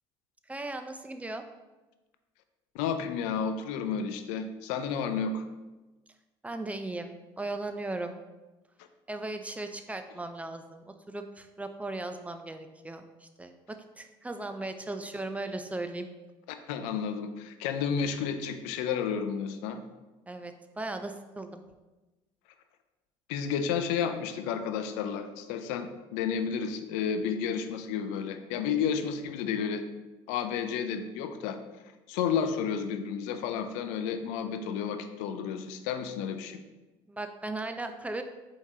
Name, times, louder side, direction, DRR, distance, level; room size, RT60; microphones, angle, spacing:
voice 1, 0.5-1.4 6.4-8.1 9.1-16.1 20.3-21.6 37.1-38.2, right 2 dB, 10° right, 7 dB, 0.4 m, -37 dB
voice 2, 2.7-5.4 16.7-19.8 23.3-29.8 30.3-31.6 32.1-36.6, left 7 dB, 85° left, 8 dB, 0.4 m, -31 dB
4.4 x 3.7 x 2.8 m, 1.1 s
supercardioid pair, 85°, 12 cm